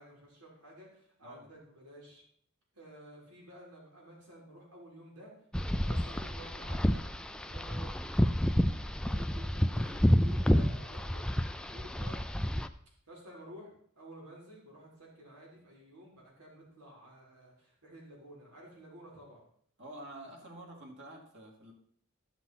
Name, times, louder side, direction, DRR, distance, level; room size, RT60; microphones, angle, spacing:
voice 1, 0.0-2.2 2.7-5.3 5.8-7.1 7.4-7.9 9.1-12.2 13.1-19.4, equal, 90° right, -3 dB, 4.7 m, -52 dB
sound 1, 5.5-12.7, equal, 5° left, 0.4 m, -29 dB
voice 2, 19.8-21.7, right 1 dB, 55° right, 0 dB, 2.9 m, -48 dB
14.0 x 5.9 x 5.9 m, 0.63 s
head